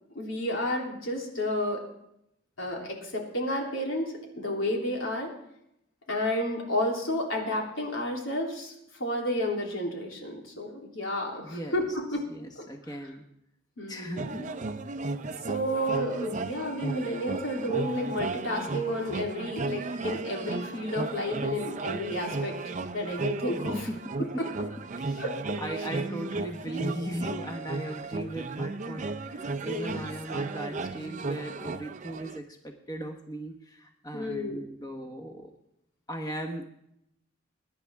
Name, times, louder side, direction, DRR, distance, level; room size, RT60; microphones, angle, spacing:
voice 1, 0.1-1.8 2.6-5.3 6.1-8.7 9.0-12.3 12.5-12.9 13.8-14.5 15.5-22.5 22.9-23.7 24.4-24.5 25.2-25.6 29.7-30.1 34.1-34.6, left 1 dB, 90° left, -1 dB, 3.3 m, -31 dB
voice 2, 11.4-11.7 12.3-13.2 13.9-14.5 23.7-24.3 25.0-25.2 25.6-35.5 36.1-36.6, right 1 dB, 20° left, 3 dB, 1.3 m, -38 dB
sound 1, 14.2-32.4, right 3 dB, 40° right, 0.6 m, -35 dB
21.5 x 10.5 x 3.6 m, 0.77 s
head